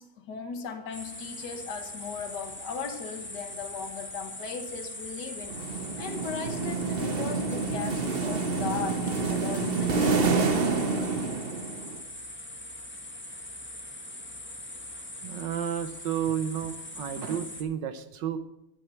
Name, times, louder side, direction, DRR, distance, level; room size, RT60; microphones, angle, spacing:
voice 1, 0.0-10.2, left 5 dB, 55° left, 6 dB, 1.7 m, -38 dB
sound 1, 0.9-17.6, left 1 dB, 15° left, 0.4 m, -41 dB
sound 2, 5.5-12.0, right 4 dB, 50° right, 0.7 m, -28 dB
voice 2, 15.2-18.4, right 8 dB, 70° right, 10 dB, 1.4 m, -31 dB
11.0 x 5.9 x 8.7 m, 0.89 s
omnidirectional pair, 2.2 m